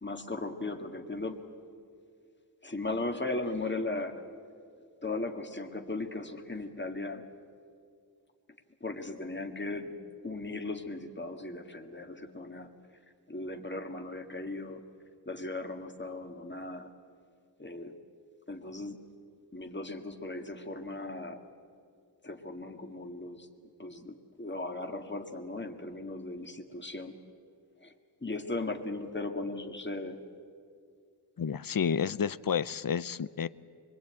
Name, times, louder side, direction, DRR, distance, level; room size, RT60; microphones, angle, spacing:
voice 1, 0.0-1.5 2.6-4.2 5.0-7.3 8.8-10.0 10.2-12.7 13.3-14.8 15.3-16.9 17.6-18.0 18.5-19.0 19.5-21.5 22.2-23.5 23.8-27.1 27.8-27.9 28.2-30.2, left 2 dB, 25° left, 5 dB, 1.9 m, -37 dB
voice 2, 31.4-33.5, left 7 dB, 55° left, 18 dB, 0.6 m, -30 dB
25.0 x 22.5 x 8.9 m, 2.3 s
wide cardioid pair, 60°, 41 cm